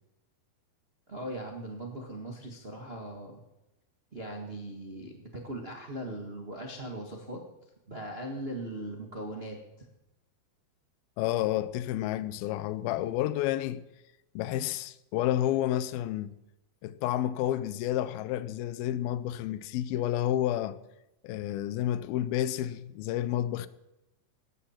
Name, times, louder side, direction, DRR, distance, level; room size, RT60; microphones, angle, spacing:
voice 1, 1.1-3.4 4.1-7.4 7.9-9.6, right 1 dB, 90° right, 0.5 m, -39 dB
voice 2, 11.2-13.8 14.4-16.4 16.8-20.8 21.2-23.7, left 12 dB, 85° left, 2.5 m, -30 dB
16.5 x 13.5 x 4.4 m
omnidirectional pair, 4.3 m